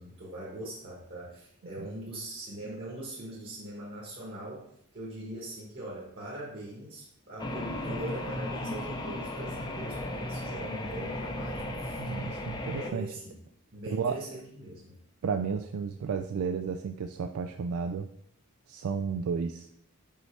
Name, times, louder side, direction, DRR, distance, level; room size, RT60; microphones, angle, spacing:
voice 1, 0.0-12.4 12.7-13.4 13.7-15.0, right 1 dB, 45° right, -5 dB, 1.4 m, -41 dB
sound 1, 7.4-12.9, left 1 dB, 20° left, 0.6 m, -35 dB
voice 2, 12.0-13.1 13.9-14.2 15.2-18.1 18.7-19.7, right 6 dB, 80° right, 7 dB, 0.3 m, -32 dB
5.6 x 5.4 x 3.2 m, 0.72 s
head